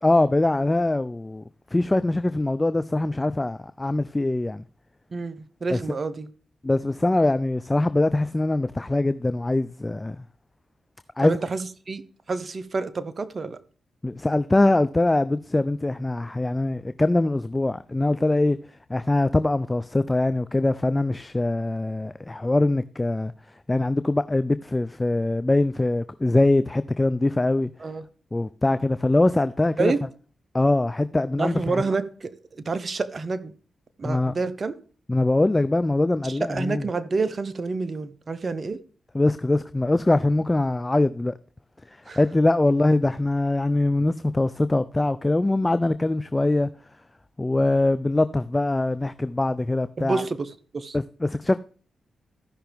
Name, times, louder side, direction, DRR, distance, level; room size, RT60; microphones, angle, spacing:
voice 1, 0.0-1.4 1.7-4.6 5.7-5.8 6.6-10.2 11.2-11.4 14.0-18.6 18.9-23.3 23.7-27.7 28.3-29.9 30.5-31.8 34.0-34.3 35.1-36.9 39.1-41.3 42.2-46.7 47.4-50.2 50.9-51.6, left 2 dB, 25° left, 0.4 m, -22 dB
voice 2, 5.1-6.3 11.2-12.0 12.3-13.6 27.8-28.0 29.8-30.0 31.4-33.5 34.0-34.7 36.2-38.8 42.1-42.2 50.0-51.0, right 4 dB, 50° right, 0.9 m, -28 dB
15.0 x 5.7 x 3.5 m
supercardioid pair, 40°, 0 cm